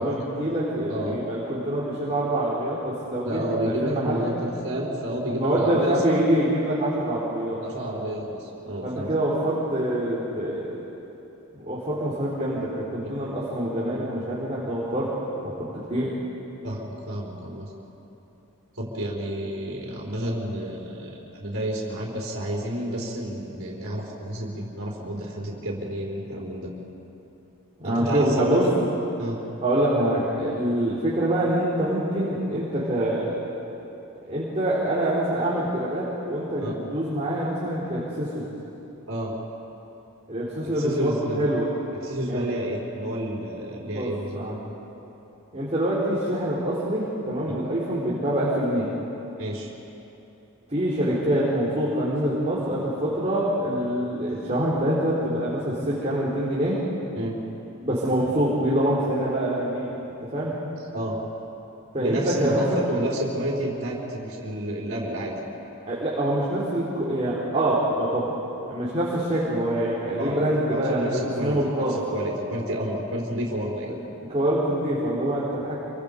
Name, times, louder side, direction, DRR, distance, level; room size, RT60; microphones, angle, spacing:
voice 1, 0.0-4.3 5.3-7.6 8.8-10.8 11.5-15.1 15.4-16.1 27.8-28.7 29.6-33.3 34.2-38.5 40.3-41.7 42.3-42.4 43.9-44.6 45.5-48.9 50.7-56.8 57.8-59.9 60.3-60.5 61.9-62.8 65.9-68.3 68.7-71.0 71.4-72.0 73.9-74.0 74.3-75.8, right 1 dB, 30° right, -8 dB, 3.9 m, -25 dB
voice 2, 0.9-1.2 3.2-6.4 7.6-9.1 16.6-17.7 18.7-26.7 27.8-28.7 29.2-29.4 36.6-36.7 39.1-39.3 40.6-41.5 41.9-44.4 49.4-49.7 57.1-57.4 60.9-61.2 62.0-65.4 70.2-71.8 72.1-73.9, equal, 65° right, -4 dB, 4.6 m, -30 dB
27.5 x 25.0 x 5.3 m, 3.0 s
head